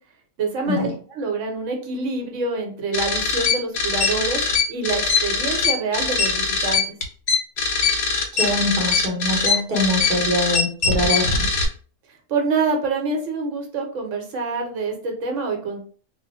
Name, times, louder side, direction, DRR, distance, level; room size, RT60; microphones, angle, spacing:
voice 1, 0.4-0.9 1.1-4.4 4.7-6.8 12.3-15.8, right 3 dB, 65° right, 2 dB, 1.1 m, -26 dB
sound 1, 2.9-11.6, left 4 dB, 55° left, 0.6 m, -21 dB
voice 2, 8.3-11.4, left 1 dB, 45° right, 0 dB, 0.8 m, -23 dB
2.4 x 2.1 x 3.9 m, 0.43 s
omnidirectional pair, 1.5 m